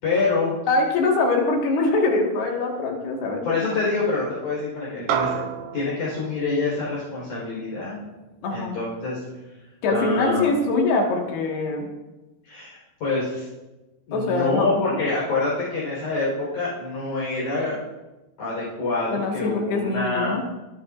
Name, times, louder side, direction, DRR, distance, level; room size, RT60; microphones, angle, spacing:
voice 1, 0.0-0.6 3.4-5.4 5.7-8.0 8.5-9.3 9.9-10.5 12.4-13.5 14.1-17.8 18.4-20.3, left 3 dB, 45° left, -7 dB, 5.2 m, -26 dB
voice 2, 0.7-3.7 8.4-8.7 9.8-11.9 14.1-15.0 19.1-20.4, left 3 dB, 70° left, 1 dB, 3.5 m, -23 dB
sound 1, 5.1-9.7, right 8 dB, 85° right, 3.2 m, -33 dB
24.5 x 9.6 x 2.5 m, 1.1 s
omnidirectional pair, 5.2 m